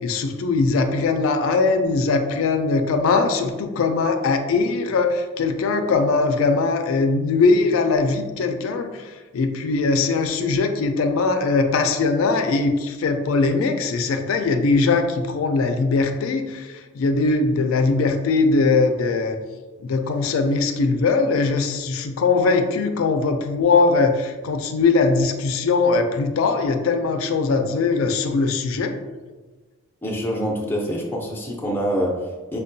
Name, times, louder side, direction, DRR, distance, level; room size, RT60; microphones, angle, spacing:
voice 1, 0.0-19.4 19.8-28.9, left 4 dB, 80° left, 6 dB, 0.3 m, -21 dB
voice 2, 30.0-32.6, equal, 10° left, -2 dB, 0.4 m, -25 dB
5.2 x 2.2 x 2.6 m, 1.3 s
head